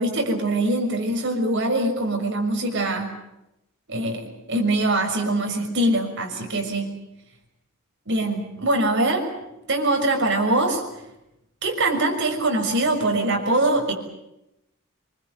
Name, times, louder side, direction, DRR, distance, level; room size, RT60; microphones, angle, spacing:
voice 1, 0.0-3.1 3.9-7.0 8.1-9.3 9.7-10.8 11.6-13.9, right 2 dB, 55° right, 3 dB, 6.1 m, -23 dB
26.5 x 23.0 x 8.1 m, 0.87 s
head